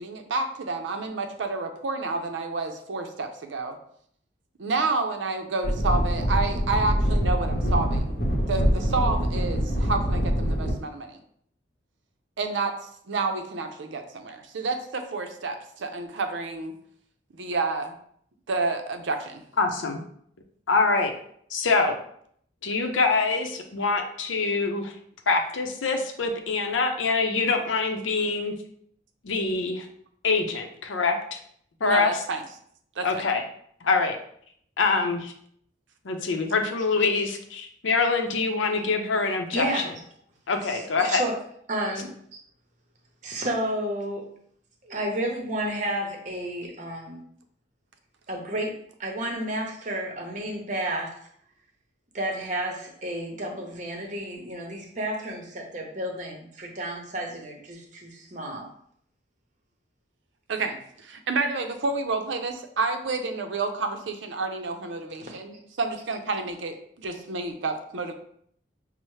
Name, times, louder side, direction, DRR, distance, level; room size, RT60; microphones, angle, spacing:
voice 1, 0.0-3.8 4.6-8.2 8.5-11.2 12.4-12.7 13.1-16.7 17.3-17.9 18.5-19.4 31.8-32.4 33.0-33.3 60.5-68.1, right 3 dB, 75° right, 5 dB, 0.5 m, -29 dB
sound 1, 5.6-10.7, equal, 55° left, 0.8 m, -24 dB
voice 2, 19.6-20.0 20.7-21.1 21.5-22.0 22.6-24.9 25.3-28.5 29.2-29.9 30.2-31.4 31.8-32.1 33.0-33.4 33.8-34.2 34.8-35.3 36.0-39.8 40.5-41.2, left 4 dB, 85° left, 4 dB, 0.6 m, -25 dB
voice 3, 39.5-39.8 40.6-41.4 41.7-42.1 43.2-44.3 44.8-47.2 48.3-51.2 52.1-58.7 65.2-65.3, right 1 dB, 40° right, 1 dB, 0.7 m, -31 dB
5.4 x 2.0 x 3.1 m, 0.65 s
head